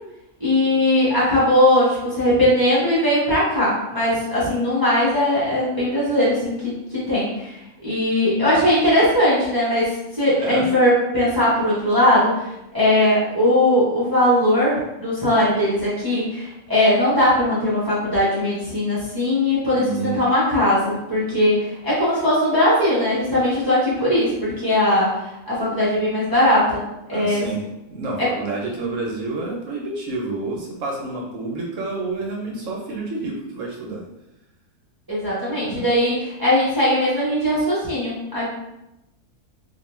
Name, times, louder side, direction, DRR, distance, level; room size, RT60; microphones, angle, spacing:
voice 1, 0.4-6.6 6.9-25.2 25.5-26.8 27.1-27.4 28.2-28.3 35.1-38.5, left 1 dB, 25° right, -9 dB, 0.5 m, -19 dB
voice 2, 10.4-10.7 19.7-20.3 27.1-34.0 35.6-35.9, right 3 dB, 70° right, -1 dB, 0.8 m, -29 dB
2.4 x 2.2 x 3.0 m, 0.90 s
omnidirectional pair, 1.5 m